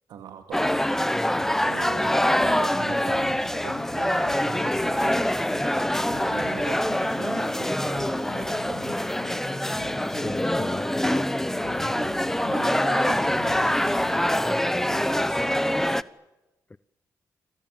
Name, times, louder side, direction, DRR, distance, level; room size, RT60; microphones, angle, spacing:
voice 1, 0.1-0.9 1.6-5.3 6.1-9.0 10.2-10.8 11.8-12.1 12.4-15.9, right 8 dB, 85° right, 2.4 m, -41 dB
sound 1, 0.5-16.0, left 1 dB, 5° left, 1.2 m, -25 dB
sound 2, 1.4-14.3, left 9 dB, 80° left, 1.6 m, -43 dB
voice 2, 10.0-11.9 16.7-16.8, left 2 dB, 20° left, 0.9 m, -35 dB
30.0 x 25.5 x 7.4 m
cardioid pair, 60°, 7 cm